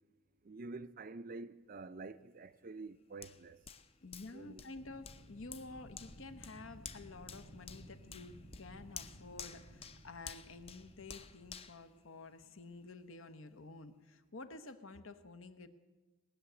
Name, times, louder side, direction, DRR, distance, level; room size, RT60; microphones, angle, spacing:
voice 1, 0.4-3.6 4.3-4.6, right 3 dB, 40° right, 0.5 m, -48 dB
Hands, 3.2-12.7 13.2-13.3, left 6 dB, 25° left, 0.6 m, -52 dB
voice 2, 4.0-15.7, left 3 dB, 70° left, 1.0 m, -51 dB
Wind, 4.7-11.7, equal, 50° left, 1.8 m, -57 dB
20.0 x 6.8 x 9.2 m
head